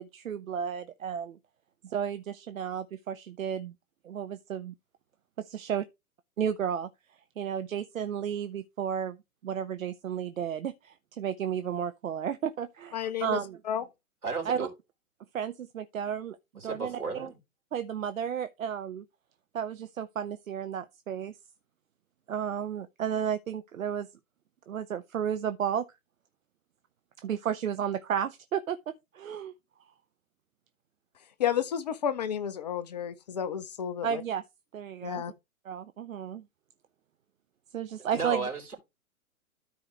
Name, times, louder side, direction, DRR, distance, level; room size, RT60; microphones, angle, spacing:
voice 1, 0.0-1.4 1.8-3.7 4.0-4.7 5.5-5.8 6.4-6.9 7.4-9.2 9.4-13.6 14.4-14.7 15.3-16.4 16.6-17.3 17.7-19.0 19.5-21.3 22.3-24.1 24.7-25.9 27.2-29.5 34.0-34.4 34.7-35.2 35.6-36.4 37.7-38.5, right 8 dB, 65° right, 0.7 m, -33 dB
voice 2, 12.9-13.4 13.7-13.8 31.4-34.2 35.0-35.3, left 9 dB, 30° left, 0.5 m, -31 dB
voice 3, 14.2-14.7 16.6-17.4 38.1-38.7, right 4 dB, 85° right, 3.7 m, -34 dB
13.0 x 4.7 x 3.3 m
figure-of-eight pair, 120°, 44 cm